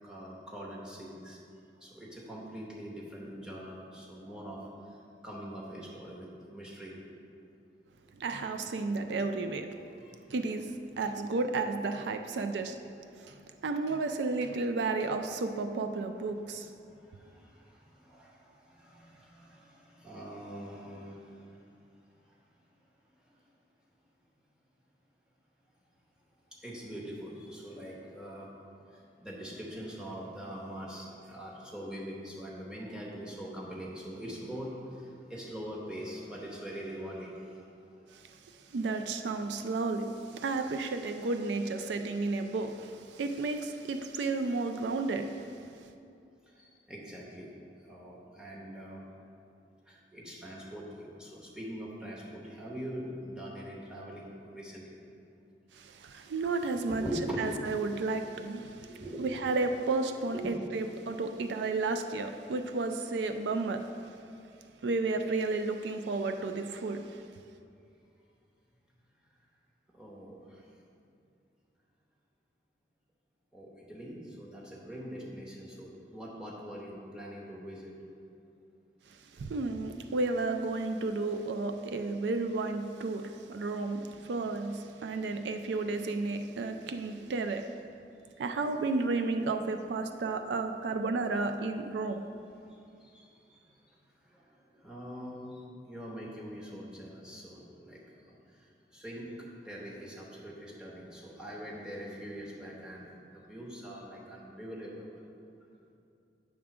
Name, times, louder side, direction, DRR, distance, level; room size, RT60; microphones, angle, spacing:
voice 1, 0.0-1.4 1.8-4.6 5.2-7.0 10.0-10.2 13.2-13.3 16.9-21.5 26.6-28.5 28.9-37.6 46.6-47.5 47.9-49.0 49.9-54.9 56.9-57.5 58.8-59.5 60.2-60.5 66.2-66.3 69.9-70.6 73.5-77.9 93.0-93.6 94.3-94.4 94.7-98.0 98.3-98.4 98.9-105.1, equal, 5° right, -5 dB, 1.0 m, -43 dB
voice 2, 8.1-9.7 10.3-12.8 13.3-16.7 38.1-38.2 38.7-45.5 55.7-57.0 57.4-58.9 59.2-63.9 64.8-67.2 79.3-87.7 88.4-92.2, right 3 dB, 80° right, 7 dB, 0.4 m, -32 dB
8.3 x 3.7 x 5.9 m, 2.5 s
head